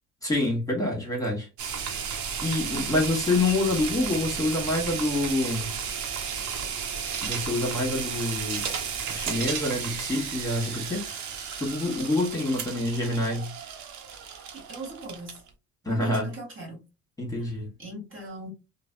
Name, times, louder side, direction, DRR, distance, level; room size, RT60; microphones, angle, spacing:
voice 1, 0.2-1.5 1.7-2.1 2.4-5.8 7.2-8.7 9.1-11.1 11.6-13.5 15.8-16.3 17.2-17.7, left 2 dB, 10° left, 1.4 m, -27 dB
sound 1, 1.6-15.5, right 7 dB, 70° right, 0.7 m, -33 dB
voice 2, 14.5-15.4 15.8-16.8 17.3-17.5 17.8-18.5, right 2 dB, 45° right, 1.5 m, -39 dB
3.3 x 2.0 x 2.5 m
cardioid pair, 85°, 30 cm